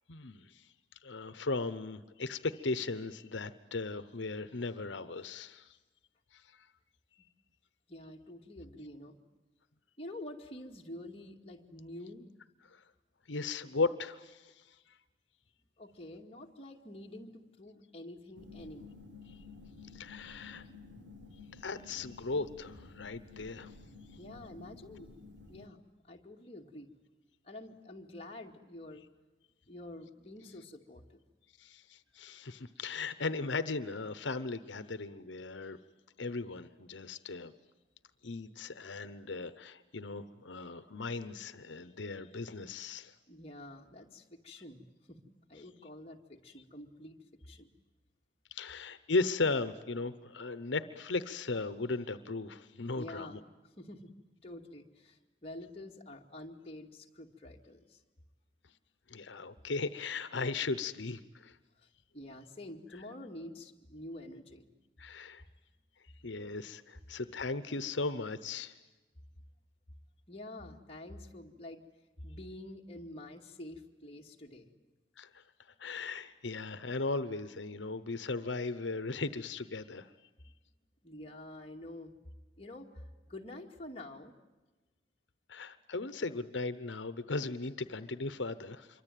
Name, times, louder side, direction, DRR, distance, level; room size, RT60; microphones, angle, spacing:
voice 1, 0.1-0.7 1.0-5.8 6.3-6.7 12.7-12.8 13.3-15.0 19.3-19.4 19.9-20.6 21.5-23.7 31.6-35.8 36.2-37.5 38.2-43.1 48.5-53.4 59.1-61.6 65.0-65.4 66.2-68.8 75.2-75.4 75.8-80.1 85.5-89.0, left 3 dB, 85° left, 13 dB, 1.0 m, -37 dB
voice 2, 7.9-9.2 10.0-12.3 15.8-18.9 21.3-21.4 24.2-25.1 25.5-25.8 26.1-26.9 27.4-29.0 29.7-31.2 43.3-44.8 45.1-45.2 45.5-47.2 47.4-47.7 53.0-53.4 53.8-54.1 54.4-58.0 61.8-61.9 62.1-64.7 70.3-71.8 72.2-74.7 81.0-82.1 82.6-84.3, left 1 dB, 30° left, 1 dB, 2.3 m, -48 dB
sound 1, 18.3-25.7, left 3 dB, 85° right, 2.2 m, -53 dB
27.0 x 24.0 x 9.2 m, 1.2 s
head